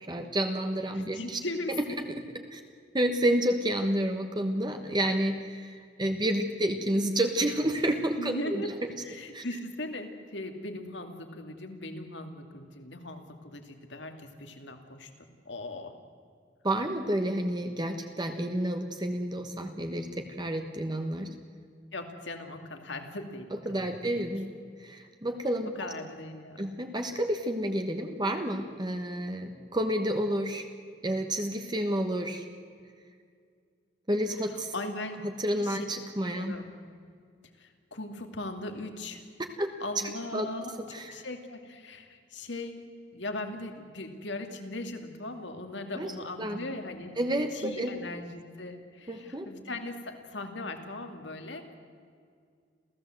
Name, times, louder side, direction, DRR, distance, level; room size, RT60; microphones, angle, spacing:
voice 1, 0.0-1.4 1.8-1.9 2.5-2.6 2.9-8.7 9.3-9.4 16.6-21.3 23.6-24.5 24.8-25.9 26.6-30.7 31.0-32.4 34.1-34.7 35.2-36.5 39.6-39.7 40.3-40.5 40.8-41.1 45.9-46.1 46.4-46.6 47.2-47.9 49.1-49.5, right 1 dB, 25° right, 5 dB, 1.2 m, -30 dB
voice 2, 0.9-2.0 8.2-8.7 9.0-15.9 21.9-23.5 23.8-24.0 25.8-26.7 34.7-35.2 35.6-35.9 36.3-36.7 37.6-39.2 39.8-40.7 41.1-42.8 43.1-47.2 47.5-51.7, left 2 dB, 75° left, 6 dB, 2.4 m, -39 dB
27.5 x 16.0 x 7.8 m, 2.2 s
head